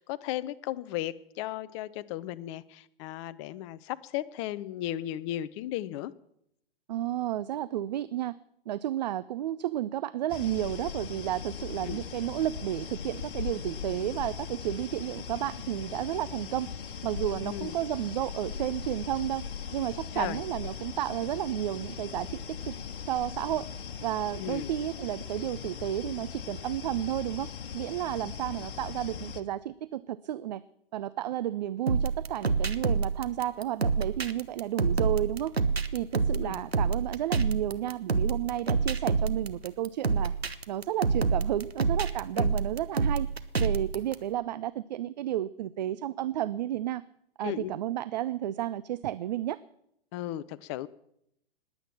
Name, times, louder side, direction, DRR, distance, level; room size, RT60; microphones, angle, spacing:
voice 1, 0.0-6.1 11.8-12.0 17.3-17.8 20.1-20.4 24.4-24.7 36.3-36.6 42.4-42.5 47.4-47.8 50.1-50.9, left 13 dB, 30° left, 16 dB, 0.7 m, -35 dB
voice 2, 6.9-8.4 8.7-16.7 17.0-19.5 19.7-22.7 23.0-23.7 24.0-27.5 27.7-30.6 30.9-35.5 35.9-40.3 40.7-43.3 43.6-47.0 47.4-49.6, right 12 dB, 45° right, 17 dB, 0.5 m, -32 dB
sound 1, 10.3-29.4, left 7 dB, 60° left, 1.5 m, -39 dB
sound 2, 31.9-44.1, right 4 dB, 90° right, 1.1 m, -28 dB
20.5 x 8.7 x 7.4 m, 0.74 s
figure-of-eight pair, 115°, 30 cm